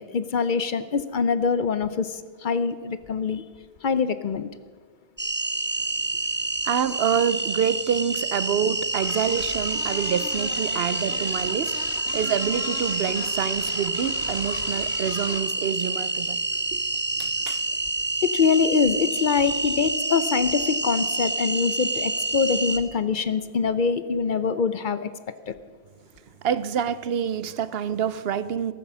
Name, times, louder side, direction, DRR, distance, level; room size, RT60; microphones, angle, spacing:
voice 1, 0.0-3.4 3.8-4.5 18.2-25.1 25.5-25.6, left 5 dB, 55° left, 13 dB, 0.7 m, -24 dB
sound 1, 5.2-22.8, right 2 dB, 10° right, 0.7 m, -28 dB
voice 2, 6.6-11.8 12.1-16.4 16.7-16.8 17.2-17.6 26.4-28.7, right 8 dB, 70° right, 16 dB, 0.8 m, -27 dB
sound 2, 9.0-15.5, left 5 dB, 80° left, 1.4 m, -38 dB
14.5 x 12.5 x 6.1 m, 1.5 s
omnidirectional pair, 1.1 m